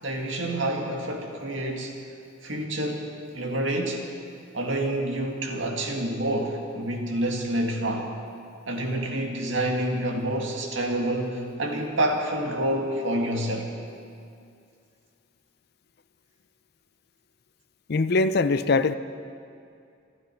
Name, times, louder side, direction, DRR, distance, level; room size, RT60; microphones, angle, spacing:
voice 1, 0.0-1.9 2.4-4.0 4.5-8.1 8.7-13.7, right 1 dB, 70° right, 1 dB, 2.1 m, -28 dB
voice 2, 17.9-18.9, left 3 dB, 55° left, 12 dB, 0.5 m, -22 dB
25.0 x 12.0 x 4.5 m, 2.4 s
head